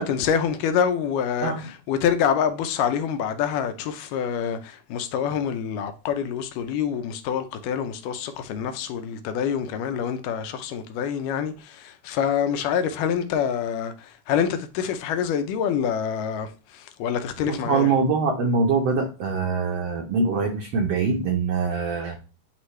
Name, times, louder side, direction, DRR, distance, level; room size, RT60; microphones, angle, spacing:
voice 1, 0.0-17.9 21.8-21.9, left 8 dB, 80° left, 2.2 m, -26 dB
voice 2, 17.5-22.2, right 4 dB, 80° right, 1.4 m, -23 dB
9.6 x 3.4 x 3.1 m
omnidirectional pair, 3.9 m